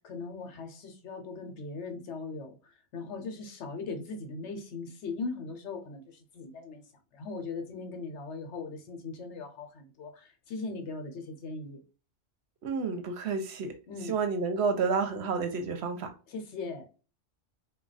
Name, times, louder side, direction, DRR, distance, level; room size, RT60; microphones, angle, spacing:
voice 1, 0.0-6.8 7.1-11.8 13.9-14.2 16.3-16.9, left 4 dB, 70° left, 0.9 m, -39 dB
voice 2, 12.6-13.7 14.1-16.1, right 5 dB, 65° right, 0.8 m, -30 dB
2.3 x 2.2 x 3.9 m
omnidirectional pair, 1.2 m